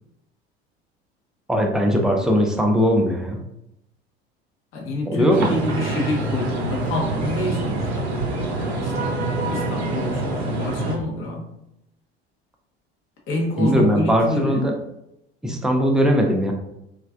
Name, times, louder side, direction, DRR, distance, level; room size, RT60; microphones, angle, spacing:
voice 1, 1.5-3.4 5.1-5.5 13.6-14.8 15.4-16.5, equal, ahead, 2 dB, 0.4 m, -19 dB
voice 2, 4.7-8.1 8.6-11.5 13.3-14.7 15.4-15.5, left 1 dB, 40° left, 0 dB, 0.7 m, -28 dB
sound 1, 5.3-10.9, right 2 dB, 80° right, 0.6 m, -26 dB
3.1 x 2.4 x 2.3 m, 0.83 s
figure-of-eight pair, 70°, 32 cm